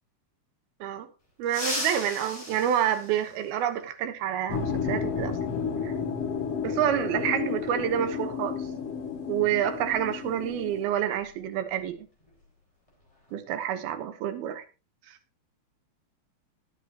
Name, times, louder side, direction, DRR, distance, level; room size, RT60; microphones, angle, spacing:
sound 1, 1.4-3.8 5.5-5.6 6.8-6.9 8.5-8.7 9.1-9.3 9.8-11.9 12.2-12.5 12.9-13.3, left 1 dB, 10° left, 5.0 m, -38 dB
voice 1, 1.4-5.4 5.8-5.9 6.6-8.6 9.3-12.0 13.3-14.6 15.1-15.2, right 10 dB, 85° right, 9 dB, 3.1 m, -28 dB
sound 2, 4.5-10.8, left 6 dB, 50° left, 2.3 m, -32 dB
20.5 x 8.5 x 2.9 m, 0.30 s
omnidirectional pair, 4.2 m